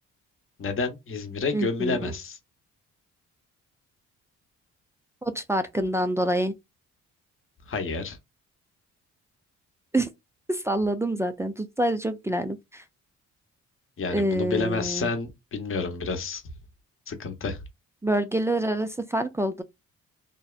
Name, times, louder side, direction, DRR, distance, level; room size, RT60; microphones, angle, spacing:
voice 1, 0.6-2.4 7.7-8.2 14.0-16.4 17.1-17.6, left 4 dB, 45° left, 0.8 m, -29 dB
voice 2, 1.5-2.1 5.2-6.5 9.9-10.1 10.5-12.8 14.1-15.1 18.0-19.6, right 1 dB, 10° right, 0.3 m, -26 dB
2.7 x 2.1 x 2.3 m
cardioid pair, 90°, 30 cm